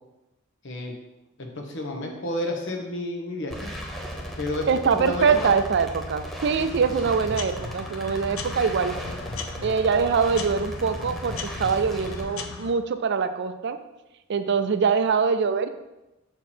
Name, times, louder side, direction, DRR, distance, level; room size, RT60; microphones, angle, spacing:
voice 1, 1.4-3.7 4.4-4.7 4.9-5.5, left 1 dB, 65° left, 2 dB, 1.1 m, -31 dB
sound 1, 3.5-12.2, equal, ahead, 0.7 m, -36 dB
voice 2, 4.7-9.0 9.6-13.8 14.3-15.7, right 5 dB, 55° right, 10 dB, 0.4 m, -23 dB
sound 2, 6.6-12.7, left 4 dB, 80° left, 0.6 m, -38 dB
6.0 x 4.4 x 4.4 m, 0.97 s
head